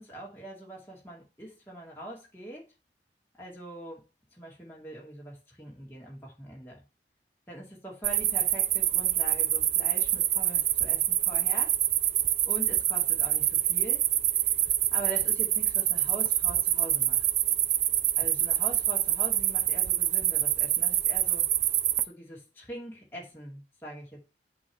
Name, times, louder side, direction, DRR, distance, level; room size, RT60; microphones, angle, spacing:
voice 1, 0.0-2.7 3.4-4.0 4.4-6.8 7.5-11.7 12.4-14.0 14.9-17.3 18.2-21.4 22.0-24.2, right 1 dB, 10° left, -4 dB, 2.4 m, -43 dB
sound 1, 8.0-22.0, right 12 dB, 40° right, 0.4 m, -26 dB
8.4 x 3.2 x 6.4 m, 0.30 s
head